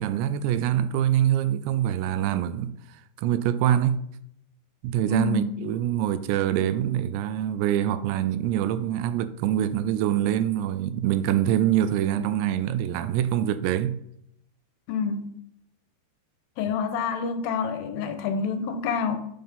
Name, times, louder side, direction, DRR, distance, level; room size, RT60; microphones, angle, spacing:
voice 1, 0.0-4.1 4.8-14.0, right 11 dB, 85° right, 2.6 m, -25 dB
voice 2, 5.1-5.6 14.9-15.4 16.6-19.2, left 6 dB, 80° left, 2.8 m, -28 dB
7.5 x 5.5 x 5.3 m
omnidirectional pair, 4.9 m